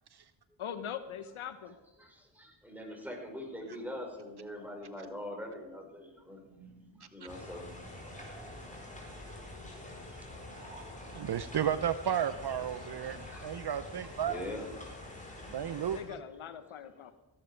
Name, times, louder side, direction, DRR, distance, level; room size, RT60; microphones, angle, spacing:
voice 1, 0.6-1.8 14.2-14.8 15.9-17.1, left 8 dB, 75° left, 12 dB, 1.0 m, -42 dB
voice 2, 2.0-6.4 7.0-7.7 8.0-8.1 9.7-10.2 10.7-11.5 12.9-14.8 15.5-15.8, left 1 dB, 5° right, 1 dB, 5.8 m, -44 dB
sound 1, 6.5-10.0 10.2-14.3, right 4 dB, 80° right, 4.3 m, -57 dB
sound 2, 7.3-16.0, left 1 dB, 15° left, 4.8 m, -46 dB
voice 3, 11.1-14.4 15.5-16.2, right 9 dB, 55° right, 14 dB, 0.7 m, -33 dB
17.0 x 11.5 x 5.2 m, 1.0 s
cardioid pair, 50°, 49 cm